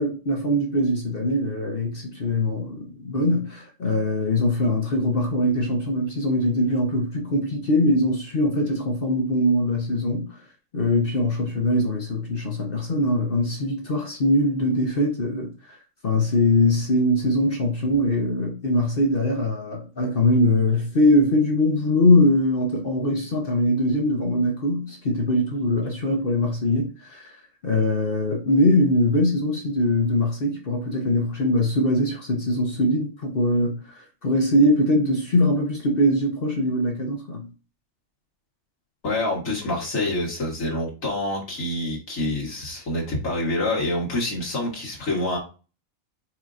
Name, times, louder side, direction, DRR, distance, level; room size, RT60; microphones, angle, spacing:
voice 1, 0.0-10.3 10.7-15.5 16.0-27.3 27.6-33.7 34.2-37.5, left 1 dB, 45° left, 1.0 m, -22 dB
voice 2, 39.0-45.4, left 1 dB, 70° left, 1.7 m, -27 dB
4.5 x 4.3 x 2.5 m
omnidirectional pair, 1.4 m